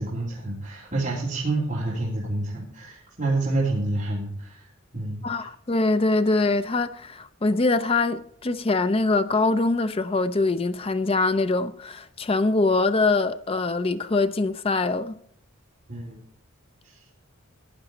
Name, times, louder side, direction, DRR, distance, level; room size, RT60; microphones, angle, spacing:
voice 1, 0.0-4.7 4.9-5.3 15.9-16.2 16.8-17.0, right 2 dB, 40° right, 3.0 m, -28 dB
voice 2, 5.2-15.1, left 3 dB, 25° left, 0.5 m, -23 dB
15.0 x 10.0 x 4.0 m
head